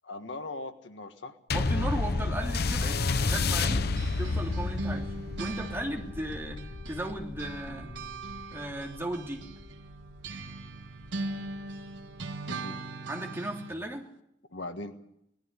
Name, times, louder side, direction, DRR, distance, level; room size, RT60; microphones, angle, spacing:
voice 1, 0.0-1.4 12.5-12.8 14.5-14.9, left 2 dB, 80° left, 8 dB, 1.6 m, -39 dB
sound 1, 1.5-10.3 11.0-11.1, left 3 dB, 60° left, 0.8 m, -31 dB
voice 2, 1.5-7.9 8.5-9.4 13.1-14.1, right 1 dB, 15° right, 0 dB, 3.1 m, -36 dB
sound 2, 3.7-7.1 7.4-13.8, right 2 dB, 90° right, 1.6 m, -40 dB
19.5 x 14.0 x 9.9 m, 0.77 s
head